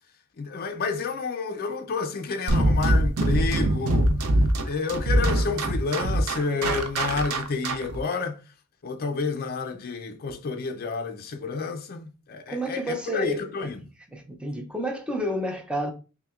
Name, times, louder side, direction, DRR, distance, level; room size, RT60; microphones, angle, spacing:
voice 1, 0.4-8.4 8.8-13.8, left 4 dB, 45° left, 0.5 m, -30 dB
sound 1, 2.5-8.0, right 1 dB, 90° right, 0.6 m, -23 dB
voice 2, 12.5-13.5 14.1-15.9, equal, 5° right, 0.5 m, -30 dB
5.6 x 2.1 x 2.3 m
head